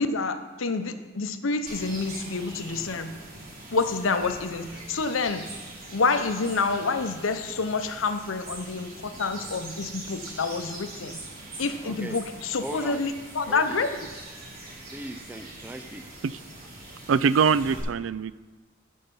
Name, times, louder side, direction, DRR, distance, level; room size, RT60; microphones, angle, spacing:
voice 1, 0.0-3.1 3.7-5.4 5.9-11.2 11.6-13.9, left 4 dB, 85° left, 9 dB, 0.8 m, -28 dB
sound 1, 1.7-17.8, right 2 dB, 50° right, 3.4 m, -42 dB
voice 2, 11.8-12.2 12.6-13.0 13.5-13.8 14.9-16.0, right 1 dB, 10° right, 7 dB, 0.5 m, -38 dB
voice 3, 17.1-18.3, right 6 dB, 70° right, 17 dB, 0.4 m, -23 dB
15.0 x 5.5 x 5.4 m, 1.3 s
head